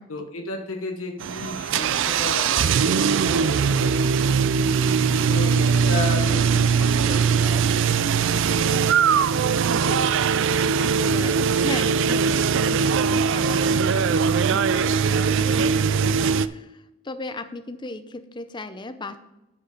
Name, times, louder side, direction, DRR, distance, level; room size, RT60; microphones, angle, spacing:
voice 1, 0.1-4.7 5.3-8.3 8.7-9.2, left 2 dB, 70° left, 3 dB, 1.3 m, -34 dB
sound 1, 1.2-16.5, right 6 dB, 55° right, 0.4 m, -21 dB
voice 2, 4.6-5.1 9.7-19.2, left 2 dB, 20° left, 9 dB, 0.6 m, -37 dB
10.0 x 5.6 x 5.1 m, 0.94 s
head